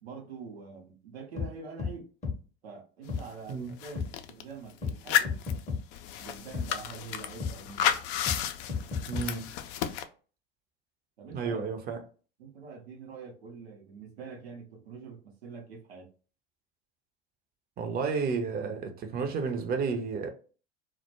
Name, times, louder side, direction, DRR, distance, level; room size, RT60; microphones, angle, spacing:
voice 1, 0.0-2.1 2.6-5.3 6.2-7.9 11.2-11.8 12.4-16.1, right 5 dB, 85° right, 0.7 m, -45 dB
sound 1, 1.4-1.5 1.8-1.9 2.2-2.4 3.1-3.2 4.0-4.1 4.8-5.0 5.2-5.8 6.5-6.7 7.4-7.5 8.3-8.4 8.7-9.3, left 5 dB, 25° left, 0.7 m, -32 dB
sound 2, 3.2-3.3 3.5-4.4 4.9-10.0, left 9 dB, 60° left, 0.4 m, -32 dB
voice 2, 9.1-9.5 11.3-12.0 17.8-20.3, right 5 dB, 30° right, 0.6 m, -31 dB
2.2 x 2.1 x 2.9 m
hypercardioid pair, 80°, 30 cm